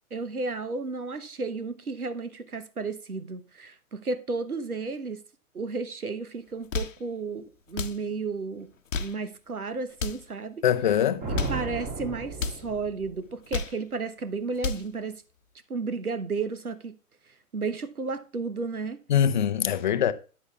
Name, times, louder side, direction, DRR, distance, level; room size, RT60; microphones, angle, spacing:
voice 1, 0.1-5.2 5.5-8.7 9.0-10.6 11.3-15.2 15.7-16.9 17.5-19.0, right 4 dB, 85° right, 1.0 m, -33 dB
sound 1, 6.5-7.0 7.7-8.0 8.7-9.2 9.9-10.3 11.1-11.6 12.3-12.6 13.3-13.8 14.4-14.9, left 4 dB, 60° left, 0.9 m, -32 dB
voice 2, 10.6-11.2 19.1-20.1, left 9 dB, 35° left, 0.5 m, -23 dB
sound 2, 11.2-13.2, right 3 dB, 20° right, 2.0 m, -34 dB
12.5 x 8.8 x 2.3 m
figure-of-eight pair, 120°, 43 cm